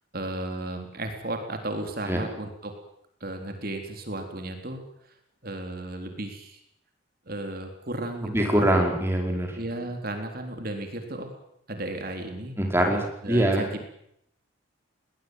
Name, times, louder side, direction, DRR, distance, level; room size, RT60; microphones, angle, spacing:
voice 1, 0.1-2.7 3.2-4.8 5.4-6.6 7.3-8.8 9.6-11.3 11.7-12.6 13.2-13.9, right 1 dB, 45° right, 5 dB, 3.7 m, -34 dB
voice 2, 8.2-9.5 12.6-13.6, right 1 dB, 10° right, 2 dB, 4.9 m, -23 dB
20.5 x 20.0 x 9.5 m, 0.75 s
head